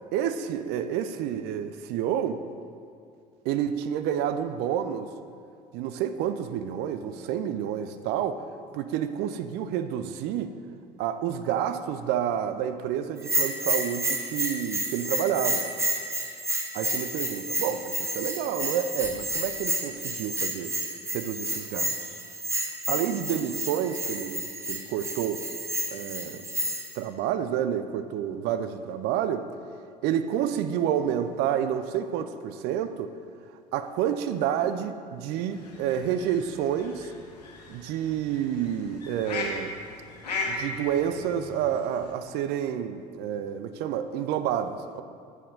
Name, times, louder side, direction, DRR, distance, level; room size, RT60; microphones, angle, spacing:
voice 1, 0.1-2.4 3.4-5.1 5.7-8.4 8.7-10.5 11.0-15.7 16.7-20.7 21.1-21.9 22.9-25.4 25.9-26.4 27.0-29.5 30.0-33.1 33.7-37.1 37.7-39.7 40.5-45.0, right 9 dB, 55° right, 10 dB, 0.5 m, -29 dB
Bell, 13.2-27.0, right 1 dB, 15° right, 1.1 m, -30 dB
sound 1, 35.5-42.1, left 3 dB, 80° left, 1.2 m, -38 dB
7.4 x 6.6 x 5.3 m, 2.3 s
figure-of-eight pair, 60°, 20 cm